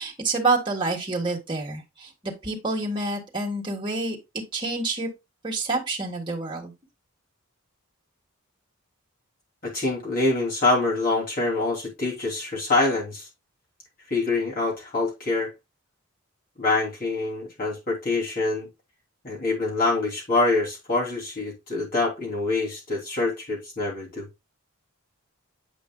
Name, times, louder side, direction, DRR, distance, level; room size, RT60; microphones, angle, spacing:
voice 1, 0.0-4.2 4.5-5.1 5.4-6.7, right 3 dB, 20° right, 1.5 m, -28 dB
voice 2, 9.6-13.3 14.1-15.5 16.6-18.7 19.2-24.3, left 3 dB, 40° left, 3.0 m, -25 dB
8.6 x 5.3 x 2.3 m
head